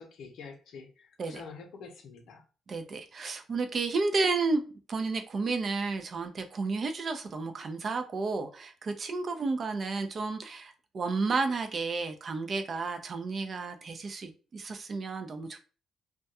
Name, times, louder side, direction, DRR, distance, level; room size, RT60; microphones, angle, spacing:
voice 1, 0.0-2.4, left 5 dB, 75° left, 4 dB, 0.6 m, -47 dB
voice 2, 2.7-4.6 4.9-15.6, right 3 dB, 45° right, 6 dB, 0.4 m, -32 dB
2.2 x 2.2 x 2.8 m, 0.36 s
cardioid pair, 90°, 0 cm